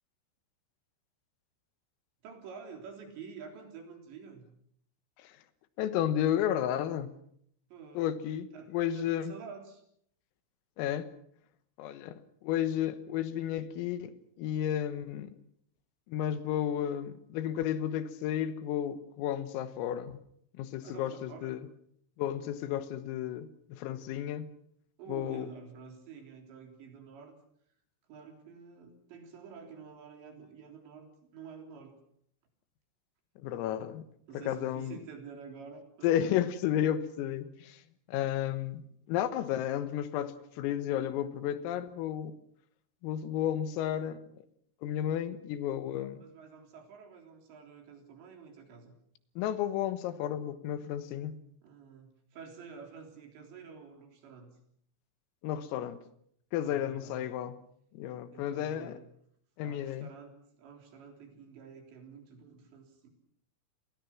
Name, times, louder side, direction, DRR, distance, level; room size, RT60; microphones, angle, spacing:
voice 1, 2.2-4.5 7.7-8.2 8.5-9.8 20.8-21.6 25.0-27.4 28.1-31.1 31.3-31.9 34.3-36.2 45.9-49.0 51.6-54.6 56.6-57.3 58.3-59.1 59.6-63.1, right 5 dB, 60° right, 5.6 m, -49 dB
voice 2, 5.8-7.1 8.0-9.3 10.8-11.1 11.8-15.3 16.1-20.2 20.6-21.6 22.2-24.5 25.1-25.5 33.4-34.1 34.4-34.9 36.0-37.8 38.1-42.4 43.0-44.4 44.8-46.2 49.4-51.4 55.4-56.0 56.5-57.6 57.9-59.0 59.6-60.1, left 10 dB, 85° left, 4.0 m, -32 dB
30.0 x 20.5 x 6.0 m
omnidirectional pair, 5.9 m